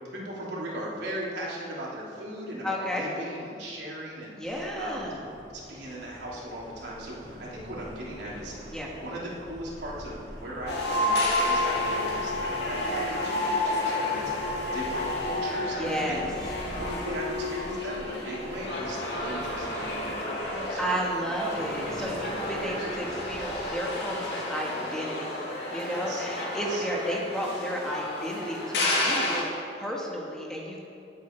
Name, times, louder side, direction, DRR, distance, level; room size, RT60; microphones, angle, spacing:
voice 1, 0.1-15.8 16.0-16.4 16.7-20.9 21.6-23.2 25.9-26.3 26.5-26.8, right 1 dB, 85° right, -5 dB, 3.3 m, -38 dB
voice 2, 2.6-3.0 4.4-5.2 8.7-8.9 15.8-16.3 20.8-25.4 25.7-30.8, equal, 5° left, -3 dB, 1.7 m, -32 dB
sound 1, 4.4-23.4, equal, 50° right, 3.0 m, -45 dB
sound 2, 10.7-29.4, left 1 dB, 70° left, 2.5 m, -30 dB
19.0 x 8.3 x 4.6 m, 2.6 s
head